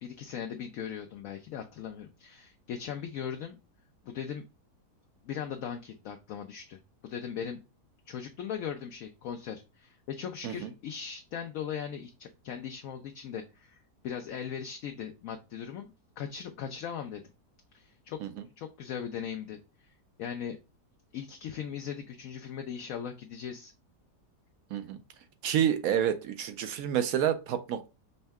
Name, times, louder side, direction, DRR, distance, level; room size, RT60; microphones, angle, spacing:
voice 1, 0.0-3.6 4.0-4.4 5.2-7.6 8.1-15.9 16.2-17.2 17.7-18.2 18.6-19.9 20.2-20.6 21.1-23.7, left 8 dB, 70° left, 0.8 m, -39 dB
voice 2, 25.4-27.9, right 9 dB, 70° right, 0.9 m, -29 dB
5.4 x 2.2 x 3.4 m
omnidirectional pair, 1.7 m